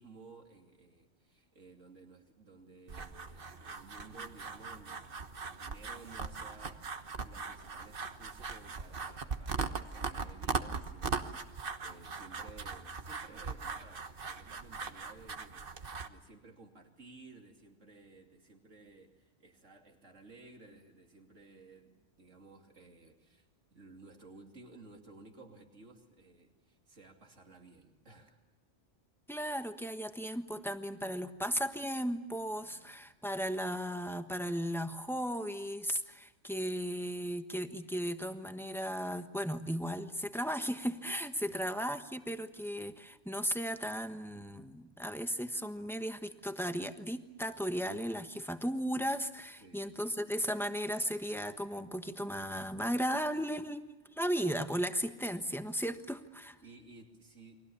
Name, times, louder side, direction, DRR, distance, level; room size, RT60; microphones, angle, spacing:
voice 1, 0.0-28.4 32.7-33.1 41.5-41.6 49.6-49.9 56.6-57.5, right 3 dB, 85° right, 3 dB, 3.2 m, -56 dB
sound 1, 2.9-16.1, right 4 dB, 50° right, 1.4 m, -40 dB
voice 2, 29.3-56.6, equal, ahead, 7 dB, 1.2 m, -36 dB
29.5 x 23.5 x 7.1 m, 1.1 s
omnidirectional pair, 1.2 m